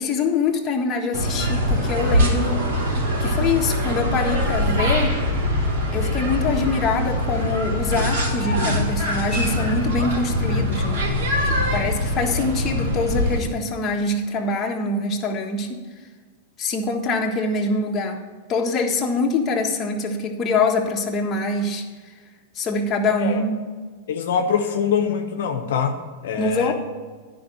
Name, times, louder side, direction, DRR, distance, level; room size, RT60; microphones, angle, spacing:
voice 1, 0.0-2.6 3.2-5.2 5.9-11.0 11.4-15.8 16.6-18.2 18.5-21.8 22.5-23.6 26.4-26.7, left 3 dB, 30° left, 0 dB, 1.5 m, -24 dB
sound 1, 1.1-13.4, left 1 dB, 75° right, 3.4 m, -23 dB
voice 2, 24.1-26.7, left 7 dB, 75° left, 4 dB, 0.9 m, -24 dB
10.5 x 5.1 x 7.5 m, 1.5 s
hypercardioid pair, 120°, 0 cm